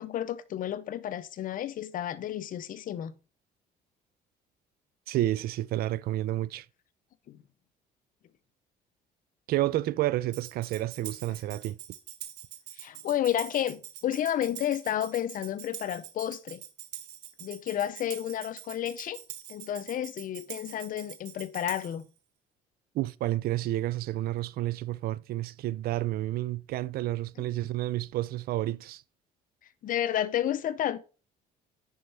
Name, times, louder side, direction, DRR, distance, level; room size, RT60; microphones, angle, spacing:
voice 1, 0.0-3.1 7.3-7.4 12.8-16.6 17.4-19.2 19.5-22.1 29.8-31.0, left 11 dB, 55° left, 0.7 m, -31 dB
voice 2, 5.1-6.7 9.5-11.8 22.9-29.0, right 15 dB, 65° right, 0.4 m, -30 dB
Tambourine, 10.3-22.0, right 12 dB, 85° right, 1.0 m, -45 dB
9.9 x 5.5 x 3.4 m
cardioid pair, 110°, 17 cm